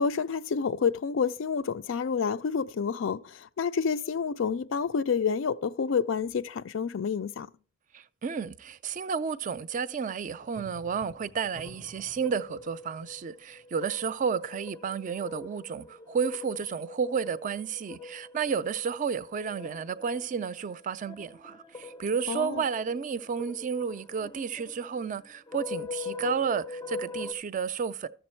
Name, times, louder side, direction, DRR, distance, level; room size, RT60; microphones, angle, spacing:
voice 1, 0.0-7.5 22.3-22.6, left 6 dB, 75° left, 0.4 m, -29 dB
voice 2, 7.9-28.1, right 6 dB, 40° right, 0.4 m, -32 dB
sound 1, 10.4-27.3, left 3 dB, 20° left, 0.5 m, -43 dB
12.5 x 6.9 x 4.4 m
head